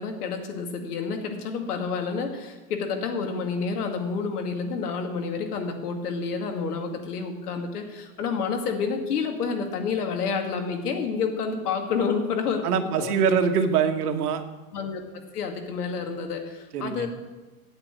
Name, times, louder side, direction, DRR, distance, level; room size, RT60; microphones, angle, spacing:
voice 1, 0.0-13.2 14.7-15.0 15.3-17.1, left 5 dB, 90° left, 5 dB, 2.2 m, -29 dB
voice 2, 12.6-14.4 16.7-17.1, right 7 dB, 85° right, 6 dB, 1.5 m, -23 dB
8.8 x 8.1 x 9.0 m, 1.2 s
supercardioid pair, 165°, 44 cm